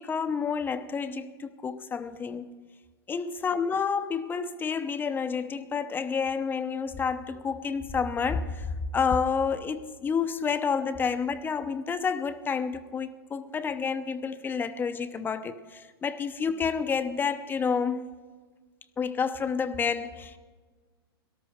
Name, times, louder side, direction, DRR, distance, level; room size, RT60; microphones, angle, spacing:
voice 1, 0.0-2.5 3.1-18.1 19.0-20.4, left 6 dB, 15° left, 0.8 m, -29 dB
18.0 x 13.0 x 5.0 m
hypercardioid pair, 120°, 13 cm